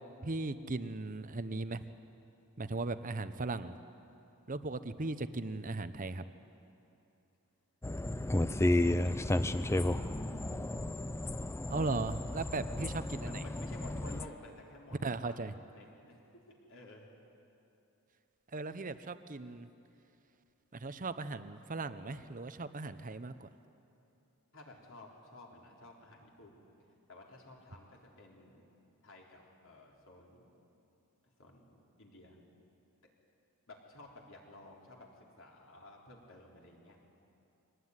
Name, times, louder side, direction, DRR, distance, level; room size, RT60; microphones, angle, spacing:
voice 1, 0.2-1.8 2.6-3.8 4.5-6.2 11.7-13.4 15.0-15.5 18.5-19.7 20.8-23.5, right 3 dB, 35° right, 12 dB, 0.8 m, -37 dB
sound 1, 7.8-14.3, left 1 dB, 10° left, 0.5 m, -33 dB
voice 2, 8.1-8.4 9.0-10.1 13.2-15.4 15.7-16.2 16.7-17.1 24.5-26.7 27.1-28.7 29.0-30.6 31.4-32.4 33.7-37.0, left 2 dB, 60° left, -1 dB, 4.0 m, -54 dB
24.0 x 19.0 x 9.7 m, 2.8 s
head